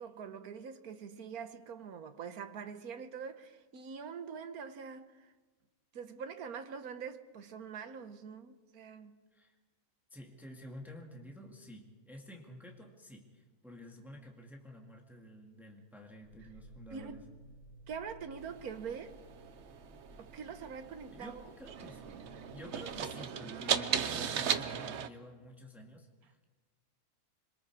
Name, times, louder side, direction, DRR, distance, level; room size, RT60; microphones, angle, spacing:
voice 1, 0.0-5.3 5.9-9.2 16.9-17.2 17.9-19.2 20.2-21.4, right 6 dB, 70° right, 1.6 m, -44 dB
voice 2, 10.1-17.2 21.1-26.5, left 1 dB, ahead, 2.2 m, -51 dB
sound 1, 16.2-23.0, right 1 dB, 70° left, 4.3 m, -57 dB
sound 2, 18.4-25.1, right 7 dB, 55° right, 1.0 m, -37 dB
27.0 x 23.5 x 4.9 m
omnidirectional pair, 1.6 m